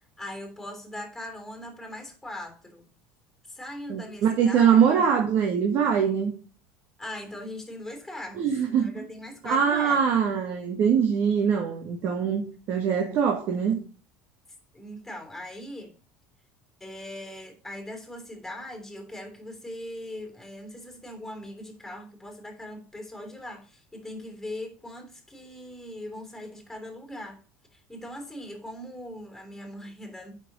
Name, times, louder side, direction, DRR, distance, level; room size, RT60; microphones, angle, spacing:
voice 1, 0.2-2.9 3.5-5.0 7.0-10.1 14.7-15.9 16.8-27.4 27.7-30.3, left 1 dB, 5° left, 3.2 m, -40 dB
voice 2, 3.9-6.3 8.4-9.1 9.4-13.8, right 7 dB, 55° right, 1.7 m, -23 dB
8.9 x 6.1 x 6.2 m
cardioid pair, 130°, 5 cm